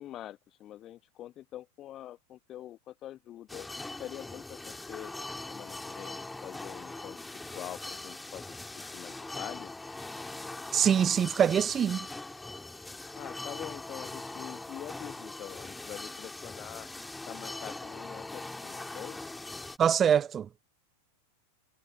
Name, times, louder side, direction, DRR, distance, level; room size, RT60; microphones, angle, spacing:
voice 1, 0.0-3.7 4.0-5.1 5.5-7.3 7.5-8.4 8.7-9.7 13.1-16.9 17.3-19.2, left 12 dB, 30° left, 1.1 m, -45 dB
sound 1, 3.5-19.8, left 2 dB, 5° left, 2.8 m, -41 dB
voice 2, 10.7-12.1 19.8-20.5, right 8 dB, 25° right, 0.5 m, -24 dB
figure-of-eight pair, 90°, 0 cm